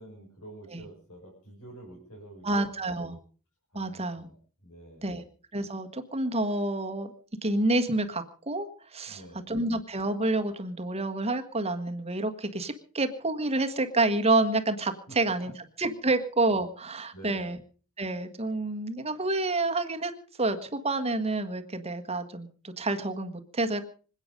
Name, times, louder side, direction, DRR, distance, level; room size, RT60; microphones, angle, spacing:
voice 1, 0.0-2.7 3.1-3.2 3.7-4.4 4.6-5.2 9.1-9.5 15.1-15.2 15.4-15.5 17.1-17.6, right 1 dB, 80° left, -2 dB, 6.0 m, -48 dB
voice 2, 2.4-3.2 3.7-4.3 5.0-5.2 5.5-7.1 7.4-9.2 9.5-15.5 15.8-17.6 18.0-20.1 20.4-23.9, right 2 dB, 30° right, 6 dB, 1.5 m, -28 dB
26.5 x 9.0 x 5.2 m, 0.41 s
head